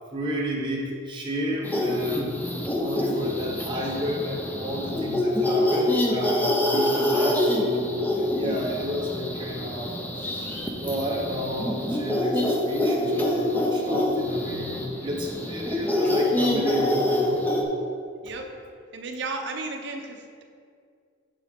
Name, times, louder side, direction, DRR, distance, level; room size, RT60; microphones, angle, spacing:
voice 1, 0.1-2.4 2.7-9.9 10.2-10.5 10.8-17.4, equal, 25° right, -3 dB, 0.8 m, -31 dB
sound 1, 1.6-17.6, left 1 dB, 10° left, 0.5 m, -26 dB
voice 2, 18.9-20.4, right 3 dB, 55° right, 3 dB, 0.7 m, -34 dB
11.0 x 3.7 x 3.6 m, 2.2 s
head